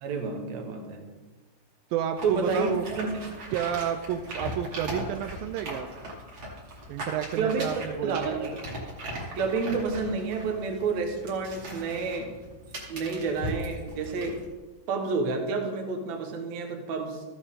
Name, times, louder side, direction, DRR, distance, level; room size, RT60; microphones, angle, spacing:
voice 1, 0.0-1.1 2.2-2.7 3.0-3.1 7.4-8.6 9.3-12.3 12.9-14.4 14.9-17.2, right 4 dB, 60° right, 4 dB, 2.0 m, -29 dB
voice 2, 1.9-2.9 3.5-5.9 6.9-8.3, right 9 dB, 90° right, 7 dB, 2.0 m, -30 dB
sound 1, 2.2-14.4, equal, 40° right, 2.6 m, -39 dB
14.0 x 9.0 x 3.7 m, 1.2 s
omnidirectional pair, 4.6 m